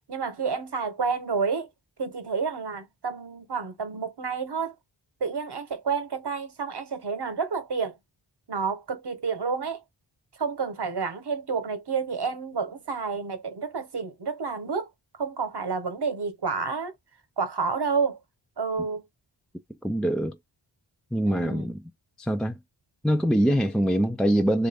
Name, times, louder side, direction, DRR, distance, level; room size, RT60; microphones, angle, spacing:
voice 1, 0.1-1.7 2.0-4.7 5.2-8.0 8.5-9.8 10.4-14.9 15.1-16.9 17.4-18.2 18.6-19.0 21.3-21.7, right 5 dB, 55° right, 1.0 m, -29 dB
voice 2, 19.8-20.4 21.1-21.8 22.2-22.6 23.0-24.7, equal, ahead, 0.3 m, -24 dB
3.3 x 2.5 x 3.4 m
wide cardioid pair, 70°, 46 cm